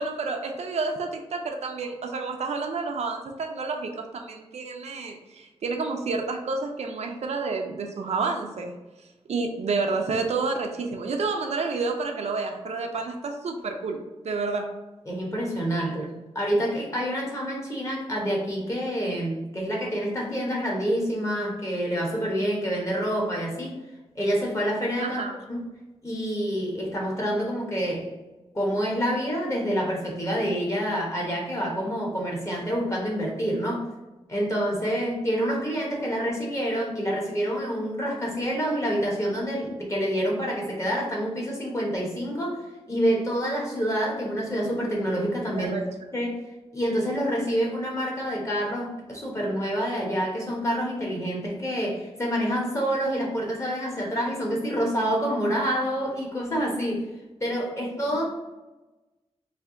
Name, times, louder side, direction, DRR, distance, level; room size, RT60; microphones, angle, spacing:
voice 1, 0.0-8.7 9.3-14.0 14.2-14.7 25.0-25.4 45.5-45.9, right 4 dB, 80° right, 3 dB, 0.5 m, -29 dB
voice 2, 15.1-23.7 24.1-25.2 25.5-25.6 26.0-28.1 28.5-33.9 34.3-42.6 42.9-45.7 46.1-46.4 46.7-57.0 57.4-58.2, equal, 25° left, -2 dB, 1.1 m, -27 dB
3.3 x 2.7 x 3.7 m, 1.1 s
wide cardioid pair, 135°, 11 cm